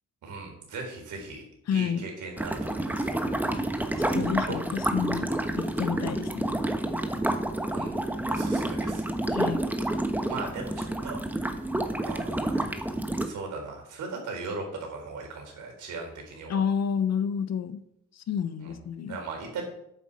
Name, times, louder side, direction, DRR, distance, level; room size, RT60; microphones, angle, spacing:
voice 1, 0.2-3.3 4.4-4.5 7.7-7.9 8.3-9.1 10.3-11.2 12.0-12.7 13.2-16.6 18.6-18.8 19.1-19.6, right 4 dB, 75° right, 2 dB, 4.2 m, -38 dB
voice 2, 1.7-2.0 4.0-6.5 9.3-9.6 16.5-17.8 18.1-19.2, left 7 dB, 60° left, 13 dB, 1.0 m, -30 dB
sound 1, 2.4-13.3, right 1 dB, 5° right, 1.3 m, -29 dB
9.0 x 8.5 x 6.5 m, 0.76 s
cardioid pair, 90°, 30 cm